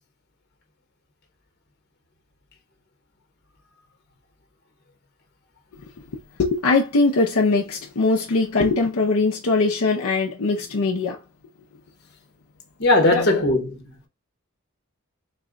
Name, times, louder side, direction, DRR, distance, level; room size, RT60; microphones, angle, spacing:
voice 1, 6.4-11.2 13.1-13.4, left 3 dB, 75° left, 0.6 m, -21 dB
voice 2, 12.8-14.1, left 2 dB, 50° left, 1.1 m, -19 dB
4.0 x 2.2 x 3.7 m
head